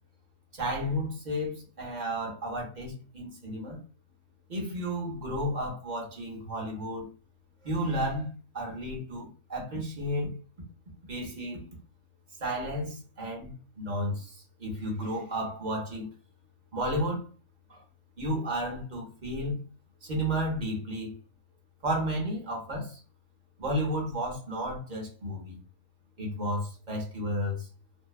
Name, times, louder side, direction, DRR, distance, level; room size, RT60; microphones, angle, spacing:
voice 1, 0.5-3.8 4.5-7.1 7.6-10.3 11.1-11.7 12.4-16.1 16.7-17.3 17.7-17.8 18.2-19.6 20.0-21.1 21.8-23.0 23.6-25.6 26.2-27.7, equal, 45° right, 0.6 m, -32 dB
2.6 x 2.0 x 2.3 m
omnidirectional pair, 1.5 m